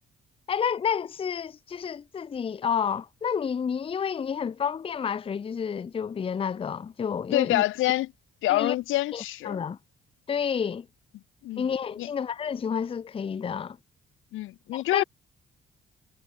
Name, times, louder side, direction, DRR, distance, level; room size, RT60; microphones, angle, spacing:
voice 1, 0.5-7.6 8.5-8.7 9.1-9.8 10.3-10.9 11.6-13.8 14.7-15.0, left 7 dB, 30° left, 0.5 m, -30 dB
voice 2, 7.3-8.1 8.4-9.6 11.4-11.7 12.0-12.1 14.3-15.0, left 16 dB, 85° left, 0.8 m, -26 dB
cardioid pair, 90°, 20 cm